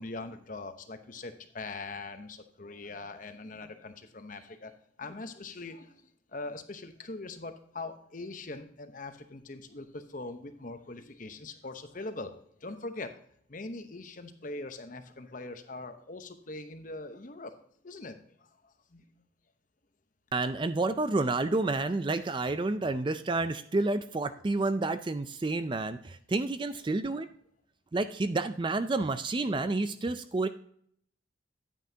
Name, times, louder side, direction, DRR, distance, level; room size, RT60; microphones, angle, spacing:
voice 1, 0.0-13.2 13.5-19.0, left 3 dB, 40° left, 8 dB, 0.9 m, -42 dB
voice 2, 20.3-27.3 27.9-30.5, right 2 dB, 25° right, 11 dB, 0.4 m, -29 dB
9.9 x 9.2 x 2.8 m, 0.63 s
head